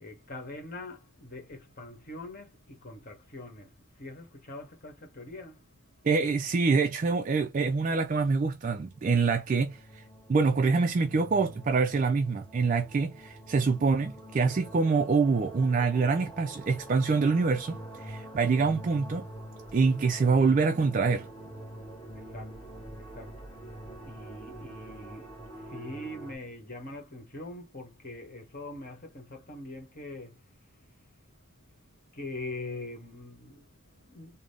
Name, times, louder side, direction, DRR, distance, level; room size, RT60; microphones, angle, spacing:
voice 1, 0.0-6.5 19.6-19.7 22.1-31.1 31.6-31.8 32.1-34.4, left 2 dB, 40° left, 1.4 m, -44 dB
voice 2, 6.0-10.0 10.3-19.3 19.7-21.3, right 4 dB, 35° right, 0.3 m, -25 dB
sound 1, 8.9-26.4, right 1 dB, 20° left, 1.9 m, -45 dB
3.7 x 2.1 x 3.4 m
head